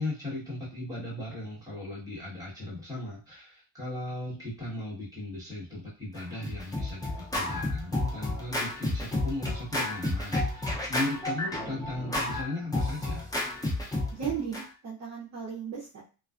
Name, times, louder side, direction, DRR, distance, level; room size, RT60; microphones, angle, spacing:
voice 1, 0.0-13.3, left 2 dB, 10° right, -7 dB, 1.2 m, -37 dB
Scratching (performance technique), 6.2-14.6, left 2 dB, 10° left, 0.4 m, -31 dB
voice 2, 14.1-16.0, right 7 dB, 40° right, -7 dB, 0.7 m, -35 dB
2.4 x 2.3 x 2.3 m, 0.34 s
cardioid pair, 145°, 43 cm